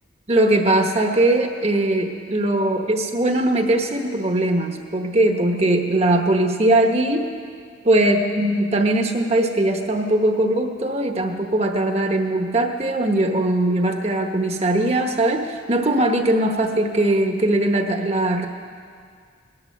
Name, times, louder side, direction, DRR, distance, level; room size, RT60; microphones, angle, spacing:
voice 1, 0.3-7.3 7.8-18.5, right 1 dB, 30° right, 4 dB, 1.1 m, -20 dB
18.5 x 12.0 x 6.5 m, 2.1 s
head